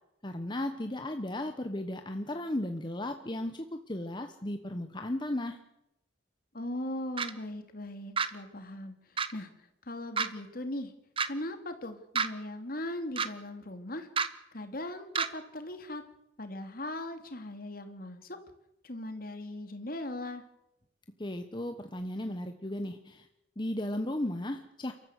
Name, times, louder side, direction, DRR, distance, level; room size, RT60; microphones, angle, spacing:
voice 1, 0.2-5.6 21.2-23.3 23.6-24.9, left 1 dB, 25° left, 6 dB, 1.1 m, -35 dB
voice 2, 6.5-9.5 9.9-10.9 11.3-16.0 16.4-18.4 18.8-20.4, left 1 dB, 50° left, 7 dB, 2.7 m, -39 dB
sound 1, 7.2-7.3 8.2-8.3 9.2-9.3 10.2-10.3 11.2-11.3 12.2-12.3 13.2-13.3 14.2-14.3 15.2-15.3, right 5 dB, 30° right, 1.1 m, -28 dB
29.5 x 14.0 x 8.3 m, 0.87 s
head